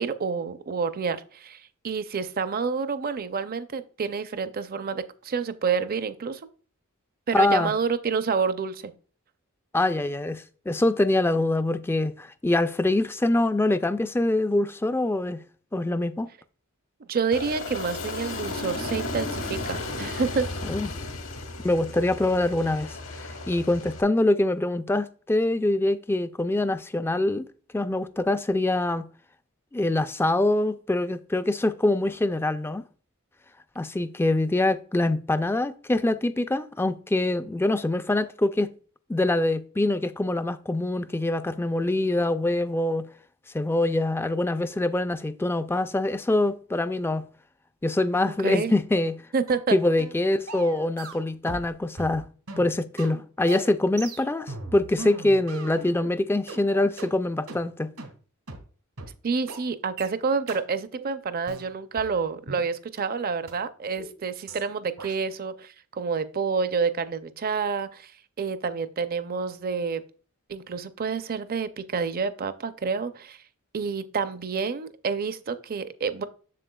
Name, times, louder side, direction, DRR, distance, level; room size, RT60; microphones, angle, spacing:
voice 1, 0.0-6.4 7.3-8.9 17.1-20.5 48.4-48.7 49.3-49.8 59.2-68.1 68.4-70.0 70.5-73.4 73.7-76.2, right 5 dB, 45° right, 0.5 m, -28 dB
voice 2, 7.3-7.7 9.7-15.4 15.7-16.3 20.7-20.9 21.6-27.5 27.7-29.0 29.7-32.8 33.8-38.7 39.1-43.0 43.5-47.2 47.8-49.1 49.7-52.2 52.6-57.9, left 2 dB, 10° left, 0.3 m, -24 dB
Aircraft, 17.3-24.0, left 2 dB, 70° left, 1.3 m, -34 dB
sound 1, 49.5-49.7 50.0-50.2 50.5-51.7 52.0-56.1 56.5-56.6 57.0-57.1 57.5-57.6 58.0-58.1 58.5-58.6 59.0-59.1 59.5-59.6 60.0-60.1 60.5-60.6 61.0-61.1 61.5-62.6 63.0-63.1 63.5-63.6 64.0-64.1 64.5-64.6 65.0-65.1, right 3 dB, 85° right, 1.7 m, -39 dB
7.6 x 6.7 x 2.3 m
head